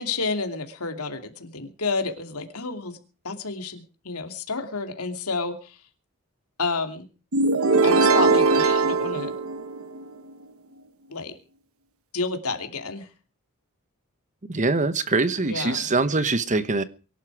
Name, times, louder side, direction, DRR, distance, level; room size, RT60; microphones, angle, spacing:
voice 1, 0.0-3.0 3.2-5.8 6.6-7.0 7.8-9.3 11.1-11.4 12.1-13.1 15.5-15.9, left 4 dB, 80° left, 6 dB, 2.8 m, -30 dB
sound 1, 7.3-10.1, right 3 dB, 65° right, 1.2 m, -20 dB
voice 2, 14.5-16.8, right 3 dB, 35° right, 13 dB, 1.1 m, -23 dB
24.0 x 11.5 x 4.8 m, 0.37 s
head